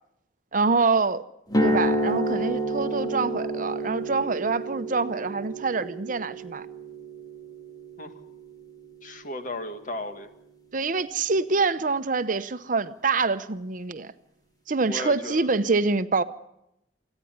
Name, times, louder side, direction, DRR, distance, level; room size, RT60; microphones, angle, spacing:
voice 1, 0.5-1.2 1.6-6.7 10.7-14.1 14.7-16.2, right 4 dB, 50° right, 0.8 m, -25 dB
sound 1, 1.5-9.5, right 1 dB, 20° left, 1.9 m, -30 dB
voice 2, 9.0-10.3 14.9-15.6, left 2 dB, 50° left, 1.9 m, -35 dB
28.0 x 9.9 x 9.4 m
head